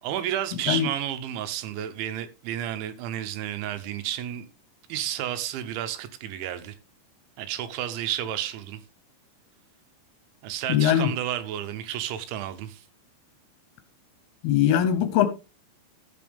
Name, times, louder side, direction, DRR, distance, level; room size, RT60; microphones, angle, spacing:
voice 1, 0.0-4.5 4.9-6.7 7.4-8.8 10.4-12.8, right 11 dB, 85° right, 3.4 m, -31 dB
voice 2, 10.7-11.1 14.4-15.3, left 10 dB, 75° left, 2.6 m, -21 dB
14.0 x 6.8 x 3.5 m
omnidirectional pair, 5.2 m